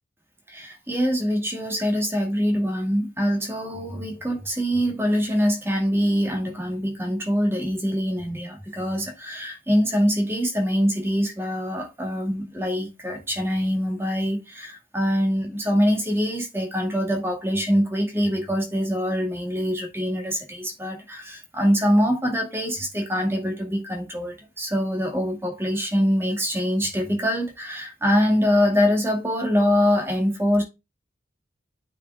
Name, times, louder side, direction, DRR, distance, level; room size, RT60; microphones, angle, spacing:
voice 1, 0.5-30.6, equal, 15° right, 2.3 m, -24 dB
9.0 x 5.2 x 3.6 m
head